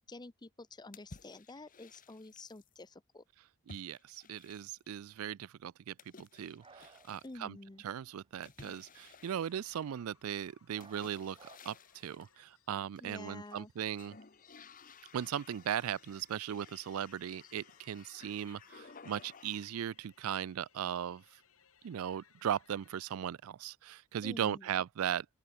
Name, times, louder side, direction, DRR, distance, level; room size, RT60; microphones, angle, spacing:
voice 1, 0.1-3.2 7.2-7.8 13.0-13.7 24.2-24.7, left 2 dB, 20° left, 0.7 m, -49 dB
sound 1, 0.9-2.7 3.7-5.0 6.0-7.4 8.4-10.1 10.8-12.3 13.0-13.6 13.9-19.9, left 4 dB, 40° left, 1.4 m, -57 dB
voice 2, 3.7-7.6 7.8-11.4 11.7-14.2 15.1-21.4 21.8-25.3, right 9 dB, 75° right, 0.4 m, -38 dB
sound 2, 6.6-10.4 10.7-11.6, right 4 dB, 25° right, 1.6 m, -62 dB
sound 3, 9.2-23.1, left 7 dB, 75° left, 4.2 m, -68 dB
open air
head